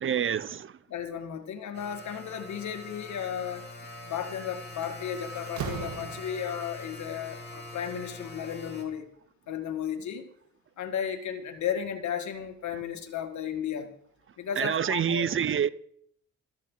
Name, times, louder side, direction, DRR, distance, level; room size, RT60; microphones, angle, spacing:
voice 1, 0.0-0.7 14.6-15.7, right 8 dB, 45° right, 0.7 m, -27 dB
voice 2, 0.9-3.7 4.1-9.1 9.5-10.3 10.8-13.9 14.4-15.3, left 8 dB, 70° left, 2.1 m, -34 dB
sound 1, 1.7-8.8, left 1 dB, 35° left, 3.3 m, -43 dB
Slam, 4.2-4.4 4.8-6.7, right 7 dB, 70° right, 1.8 m, -38 dB
15.0 x 14.0 x 4.0 m
cardioid pair, 90°, 30 cm